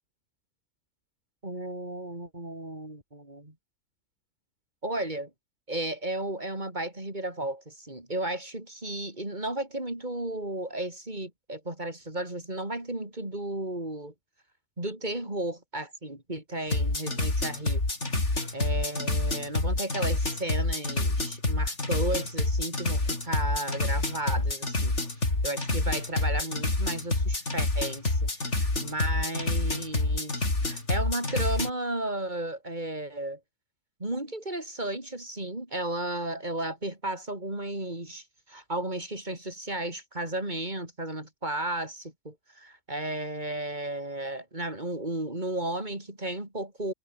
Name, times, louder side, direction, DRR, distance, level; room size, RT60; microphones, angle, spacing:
voice 1, 1.4-3.5 4.8-5.3 5.7-14.1 14.8-17.8 18.3-25.0 25.4-33.4 34.0-46.9, right 1 dB, 35° right, 5.6 m, -34 dB
sound 1, 16.7-31.7, left 2 dB, 60° left, 4.9 m, -28 dB
omnidirectional pair, 1.4 m